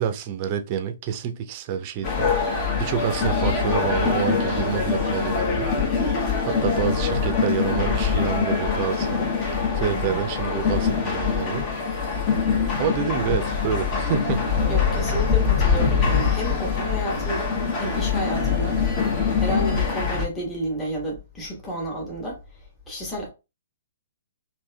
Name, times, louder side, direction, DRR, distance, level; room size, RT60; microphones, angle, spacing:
voice 1, 0.0-5.8 6.4-11.7 12.8-14.5, right 8 dB, 35° right, 0.5 m, -28 dB
sound 1, 2.0-20.3, left 5 dB, 30° left, 1.0 m, -23 dB
voice 2, 9.9-10.2 14.7-18.8 19.4-23.3, right 1 dB, 15° left, 1.3 m, -31 dB
3.4 x 2.6 x 2.2 m
figure-of-eight pair, 130°, 0 cm